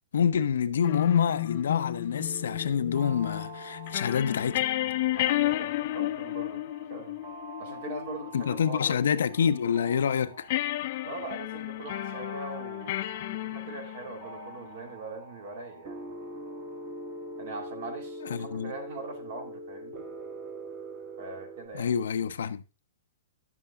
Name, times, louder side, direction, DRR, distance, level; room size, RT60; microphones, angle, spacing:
voice 1, 0.1-4.6 8.3-10.5 18.3-18.7 21.7-22.6, left 7 dB, 80° left, 0.8 m, -27 dB
sound 1, 0.8-9.9 10.5-14.7, left 16 dB, 40° left, 0.5 m, -33 dB
sound 2, 2.2-21.7, right 1 dB, 25° right, 1.7 m, -44 dB
voice 2, 5.1-6.6 6.9-7.2 7.6-8.9 11.0-13.0 13.3-16.1 17.4-20.1 21.2-21.9, right 3 dB, 50° right, 2.4 m, -41 dB
11.5 x 7.2 x 3.6 m
hypercardioid pair, 165°, 0 cm